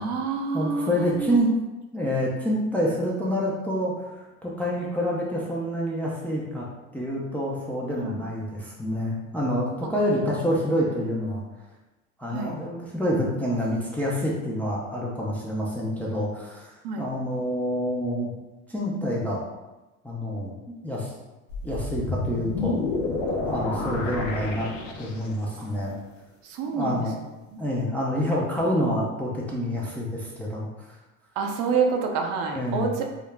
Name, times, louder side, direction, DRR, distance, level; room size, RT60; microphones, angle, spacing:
voice 1, 0.0-1.5 8.0-8.2 12.3-12.6 16.8-17.1 23.4-23.6 25.6-25.7 26.4-27.1 27.5-27.6 31.4-33.1, right 5 dB, 60° right, 3 dB, 0.5 m, -28 dB
voice 2, 0.5-1.5 1.9-6.7 6.9-11.4 12.2-16.7 17.0-18.3 18.7-19.4 20.0-21.1 21.6-22.8 23.5-24.7 25.0-26.0 26.7-27.1 27.6-30.7 32.5-32.9, equal, 5° left, -5 dB, 0.4 m, -27 dB
sound 1, 21.5-25.5, left 3 dB, 85° left, 0.5 m, -30 dB
2.3 x 2.0 x 3.2 m, 1.1 s
supercardioid pair, 90°, 37 cm